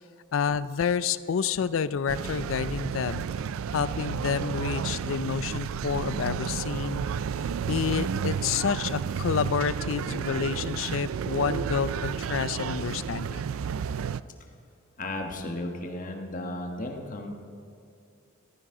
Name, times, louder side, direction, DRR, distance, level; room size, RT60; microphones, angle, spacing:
voice 1, 0.3-3.2 3.7-7.0 7.7-13.4, left 6 dB, 70° left, 16 dB, 0.4 m, -29 dB
sound 1, 2.1-14.2, right 7 dB, 90° right, 0.4 m, -31 dB
voice 2, 15.0-17.3, left 1 dB, 40° left, 3 dB, 1.4 m, -34 dB
15.0 x 14.0 x 3.8 m, 2.5 s
head